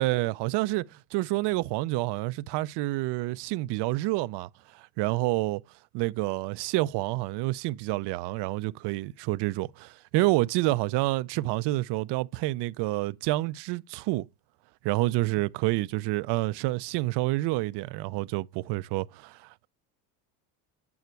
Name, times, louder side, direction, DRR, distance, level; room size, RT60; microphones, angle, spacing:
voice 1, 0.0-5.6 5.9-14.3 14.8-19.7, right 19 dB, 60° right, 0.6 m, -28 dB
9.6 x 5.8 x 4.5 m
supercardioid pair, 105°, 46 cm